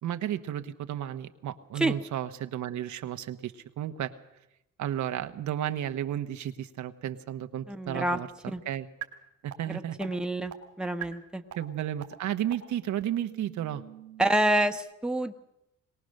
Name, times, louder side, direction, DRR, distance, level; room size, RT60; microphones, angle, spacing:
voice 1, 0.0-4.2 4.8-8.3 8.6-8.9 9.4-10.1 11.5-13.8, right 11 dB, 70° right, 8 dB, 1.1 m, -33 dB
voice 2, 7.7-8.2 8.5-8.6 9.7-11.4 14.2-15.3, right 1 dB, 5° right, 5 dB, 1.2 m, -28 dB
sound 1, 9.0-9.1 9.5-9.6 10.0-10.1 10.5-10.6 11.0-11.1 11.5-11.6 12.0-12.1 12.5-12.6 13.0-14.8, right 12 dB, 90° right, 2.3 m, -42 dB
22.5 x 18.0 x 6.5 m, 0.86 s
cardioid pair, 90°, 30 cm